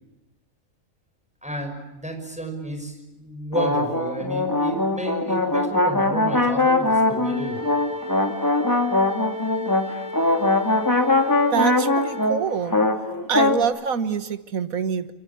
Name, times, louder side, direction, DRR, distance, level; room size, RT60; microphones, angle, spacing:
voice 1, 1.4-7.7, right 1 dB, 5° right, 4 dB, 5.8 m, -31 dB
sound 1, 3.5-13.6, left 2 dB, 15° left, 2.4 m, -21 dB
Wind instrument woodwind instrument, 7.2-12.4, left 1 dB, 90° left, 3.9 m, -35 dB
voice 2, 11.5-12.8 13.3-15.1, right 7 dB, 85° right, 10 dB, 1.9 m, -25 dB
27.0 x 24.0 x 7.2 m, 1.0 s
omnidirectional pair, 1.4 m